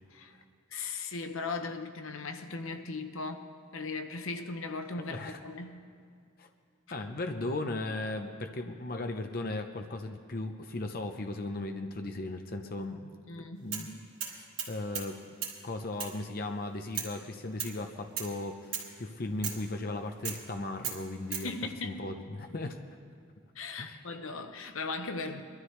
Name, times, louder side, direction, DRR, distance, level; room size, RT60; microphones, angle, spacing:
voice 1, 0.7-5.8 13.3-13.7 21.4-22.1 23.5-25.4, left 3 dB, 85° left, 7 dB, 0.9 m, -38 dB
voice 2, 5.0-5.4 6.4-6.5 6.9-13.1 13.6-14.0 14.3-15.2 15.6-21.5 21.8-22.8 23.8-24.0, left 2 dB, 45° left, 5 dB, 0.7 m, -37 dB
sound 1, 13.7-13.9 14.2-15.1 15.4-15.6 16.0-16.2 16.9-17.2 17.6-17.8 18.2-18.3 18.7-18.9 19.4-19.6 20.2-20.4 20.8-21.5, right 8 dB, 70° right, 2.6 m, -36 dB
22.0 x 13.0 x 3.2 m, 2.3 s
head